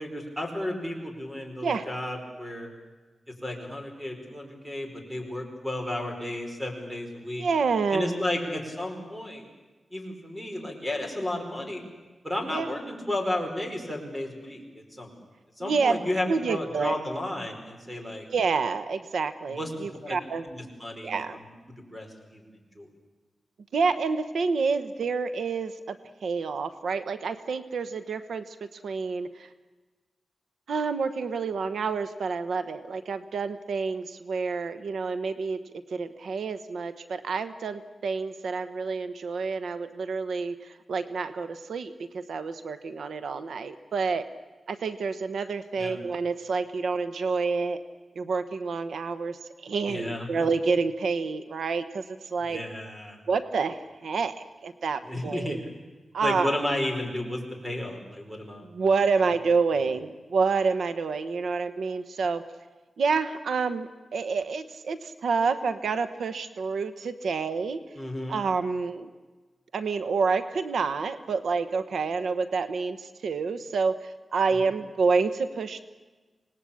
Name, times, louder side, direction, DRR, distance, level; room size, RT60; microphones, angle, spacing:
voice 1, 0.0-2.7 3.4-7.5 7.9-9.5 9.9-11.8 12.2-15.1 15.6-18.3 19.5-19.7 20.0-20.2 20.4-21.5 21.9-22.4 22.7-22.9 45.8-46.0 49.9-50.5 52.5-53.2 55.0-55.7 56.2-58.7 67.9-68.3 74.6-74.7, left 1 dB, 10° right, 3 dB, 4.8 m, -33 dB
voice 2, 7.4-8.2 12.5-12.7 15.6-16.0 16.3-17.0 18.3-20.4 21.0-21.4 23.7-28.5 28.8-29.5 30.7-35.6 35.9-44.3 44.7-47.8 48.2-52.0 52.3-52.6 53.3-54.3 54.6-55.6 56.1-56.7 58.6-62.4 63.0-67.8 68.3-69.1 69.7-75.8, right 4 dB, 85° right, 11 dB, 1.1 m, -28 dB
26.0 x 19.5 x 8.6 m, 1.3 s
wide cardioid pair, 140°, 0 cm